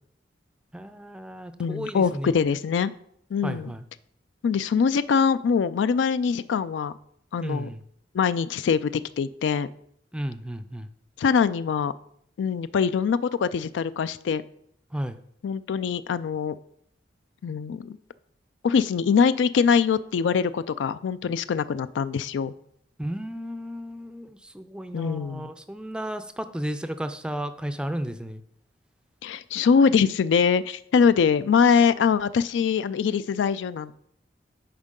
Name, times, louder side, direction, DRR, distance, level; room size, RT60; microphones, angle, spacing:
voice 1, 0.7-2.3 3.4-3.8 7.4-7.8 10.1-10.9 14.9-15.2 23.0-28.4, equal, 5° right, 11 dB, 0.4 m, -33 dB
voice 2, 1.6-2.9 3.3-3.7 4.4-6.9 7.3-7.7 8.1-9.7 11.2-11.9 12.4-14.4 15.4-16.6 17.4-18.0 18.6-22.5 24.9-25.5 29.2-33.9, left 6 dB, 85° left, 15 dB, 0.3 m, -23 dB
10.5 x 4.5 x 3.7 m, 0.69 s
head